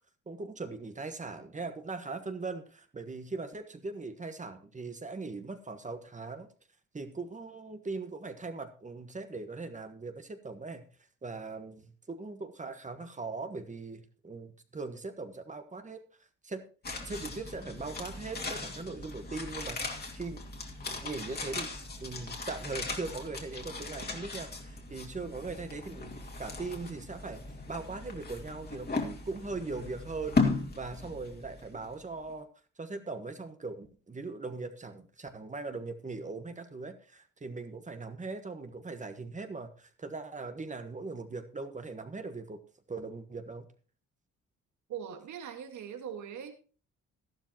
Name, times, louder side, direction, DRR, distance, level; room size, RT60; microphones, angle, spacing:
voice 1, 0.3-6.5 6.9-10.8 11.2-16.0 16.4-16.6 17.0-20.4 20.9-21.7 22.0-32.5 32.8-42.6 42.9-43.7, right 3 dB, 25° right, 8 dB, 1.4 m, -40 dB
sound 1, 16.8-32.0 32.3-32.4, left 3 dB, 30° left, 2.4 m, -37 dB
voice 2, 44.9-46.5, right 8 dB, 70° right, 6 dB, 1.9 m, -41 dB
13.0 x 12.0 x 3.0 m, 0.37 s
cardioid pair, 90°, 30 cm